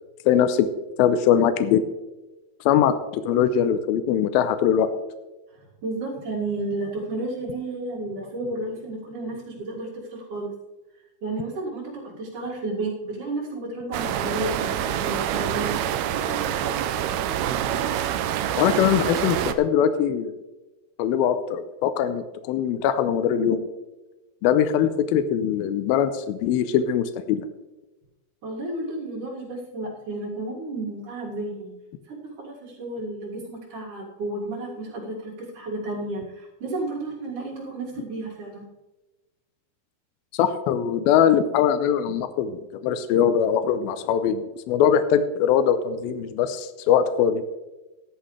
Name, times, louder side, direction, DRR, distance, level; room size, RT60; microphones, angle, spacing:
voice 1, 0.3-0.7 1.0-1.8 2.7-4.9 18.6-20.3 21.0-23.7 24.4-27.5 40.3-47.4, left 9 dB, 85° left, 10 dB, 2.4 m, -21 dB
voice 2, 5.8-10.5 11.2-15.7 16.1-16.9 28.4-31.7 32.1-38.6, right 2 dB, 60° right, -8 dB, 3.4 m, -32 dB
sound 1, 13.9-19.5, right 10 dB, 85° right, 2.7 m, -26 dB
15.0 x 11.0 x 3.2 m, 1.1 s
omnidirectional pair, 4.4 m